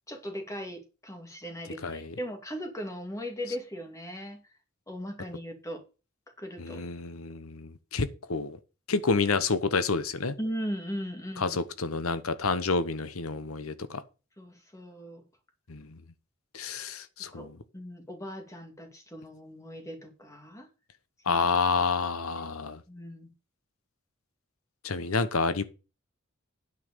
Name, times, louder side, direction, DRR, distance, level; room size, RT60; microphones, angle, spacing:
voice 1, 0.1-4.4 4.9-5.8 6.4-6.8 10.4-11.6 14.4-15.2 17.3-20.7 21.3-21.5 22.9-23.3, equal, 15° left, 2.3 m, -38 dB
voice 2, 1.8-2.1 6.6-8.6 8.9-10.3 11.4-14.0 15.7-16.0 16.5-17.6 21.3-22.8 24.8-25.6, left 4 dB, 90° left, 1.0 m, -29 dB
9.5 x 5.7 x 6.7 m
head